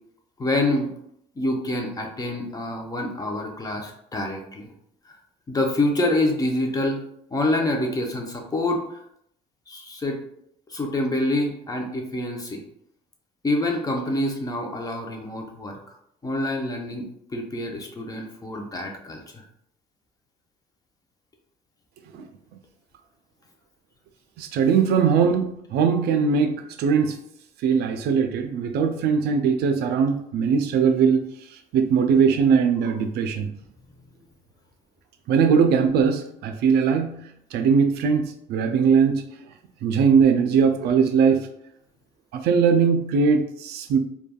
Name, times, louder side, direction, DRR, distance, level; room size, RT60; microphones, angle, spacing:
voice 1, 0.4-0.9 1.4-4.7 5.5-7.0 7.3-9.0 9.7-10.2 10.7-12.6 13.4-15.8 16.2-17.0 17.3-19.4, left 1 dB, 20° left, 2 dB, 0.5 m, -26 dB
voice 2, 24.4-27.2 27.6-31.2 31.7-33.5 35.3-39.2 39.8-41.5 42.3-44.0, right 6 dB, 75° right, 7 dB, 0.4 m, -20 dB
3.3 x 2.2 x 2.2 m, 0.72 s
cardioid pair, 110°, 17 cm